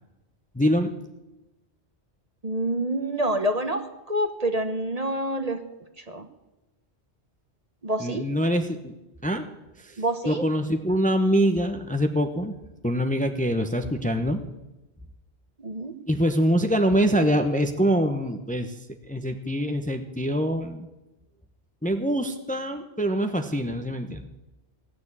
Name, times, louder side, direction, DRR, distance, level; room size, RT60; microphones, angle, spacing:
voice 1, 0.5-0.9 8.0-8.9 9.2-9.5 9.8-12.5 12.8-14.4 16.1-18.8 19.1-20.9 21.8-24.3, equal, 10° left, 7 dB, 0.9 m, -24 dB
voice 2, 2.4-5.6 6.0-6.3 7.8-8.2 10.0-10.4 15.6-15.9, right 1 dB, 35° right, 8 dB, 1.1 m, -27 dB
17.0 x 7.0 x 9.8 m, 1.0 s
omnidirectional pair, 1.1 m